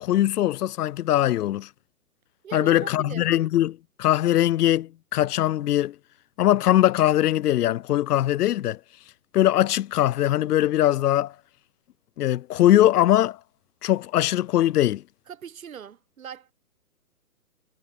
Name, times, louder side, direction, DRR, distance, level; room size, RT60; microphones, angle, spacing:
voice 1, 0.0-1.7 2.5-5.9 6.4-8.8 9.3-11.3 12.2-13.4 13.8-15.0, left 13 dB, 75° left, 0.5 m, -21 dB
voice 2, 2.4-3.2 15.3-16.5, right 8 dB, 60° right, 3.6 m, -40 dB
hypercardioid pair, 160°, 46 cm